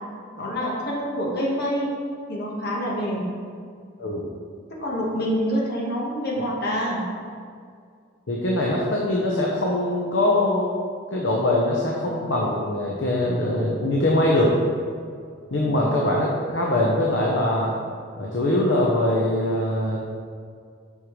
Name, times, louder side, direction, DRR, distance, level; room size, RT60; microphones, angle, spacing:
voice 1, 0.3-1.9 2.3-3.4 4.7-7.0 15.6-15.8, equal, 55° left, -2 dB, 1.3 m, -26 dB
voice 2, 8.3-10.7 11.1-14.6 15.5-17.7 18.2-20.0, left 1 dB, 75° left, -3 dB, 0.8 m, -22 dB
8.0 x 5.5 x 3.2 m, 2.2 s
head